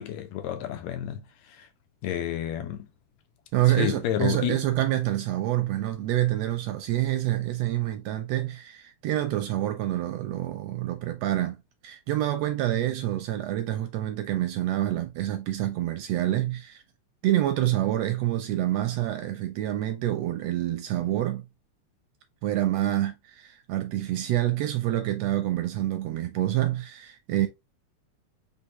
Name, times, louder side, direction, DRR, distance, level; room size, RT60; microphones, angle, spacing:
voice 1, 0.0-1.7 2.0-2.9 3.8-4.6, left 11 dB, 75° left, 1.8 m, -30 dB
voice 2, 3.5-11.6 11.8-16.8 17.2-21.4 22.4-27.5, right 14 dB, 80° right, 1.6 m, -27 dB
4.5 x 3.5 x 2.9 m
omnidirectional pair, 3.3 m